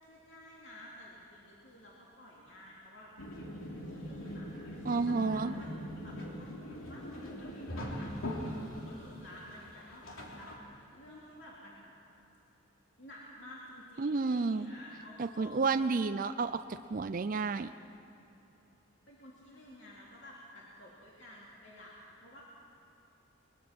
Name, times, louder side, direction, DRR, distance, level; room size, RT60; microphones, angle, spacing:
voice 1, 0.0-6.6 6.9-7.1 7.7-11.9 13.0-15.8 19.1-22.4, left 1 dB, 60° left, -5 dB, 2.9 m, -52 dB
sound 1, 3.2-10.5, equal, 90° left, 3.0 m, -41 dB
voice 2, 4.9-5.5 14.0-14.7 15.2-17.7, right 4 dB, 40° right, 10 dB, 0.4 m, -31 dB
22.5 x 21.0 x 6.0 m, 2.9 s
head